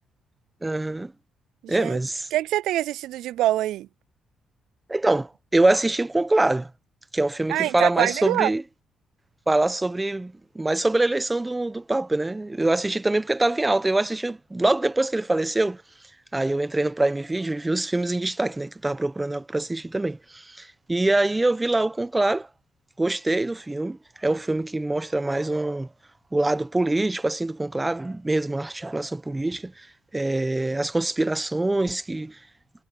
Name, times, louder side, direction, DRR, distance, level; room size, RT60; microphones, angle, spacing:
voice 1, 0.6-1.1 1.7-2.3 4.9-6.7 7.1-8.6 9.5-15.8 16.3-22.5 23.0-25.9 26.3-29.9 30.1-32.4, right 2 dB, 15° right, 1.3 m, -24 dB
voice 2, 1.6-2.0 2.3-3.9 7.5-8.5, right 14 dB, 85° right, 0.3 m, -25 dB
cardioid pair, 90°, 0 cm